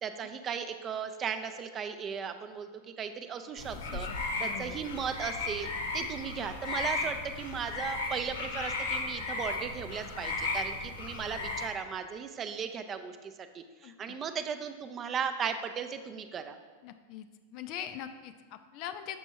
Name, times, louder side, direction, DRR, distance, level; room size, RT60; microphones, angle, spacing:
voice 1, 0.0-2.7 3.0-4.1 4.4-16.6, right 7 dB, 25° right, 8 dB, 0.4 m, -36 dB
sound 1, 3.6-11.7, left 3 dB, 60° left, 0.8 m, -35 dB
voice 2, 3.7-4.8 13.8-14.2 16.8-19.2, left 10 dB, 40° left, 9 dB, 0.3 m, -43 dB
7.0 x 6.0 x 2.8 m, 1.4 s
figure-of-eight pair, 90°, 0 cm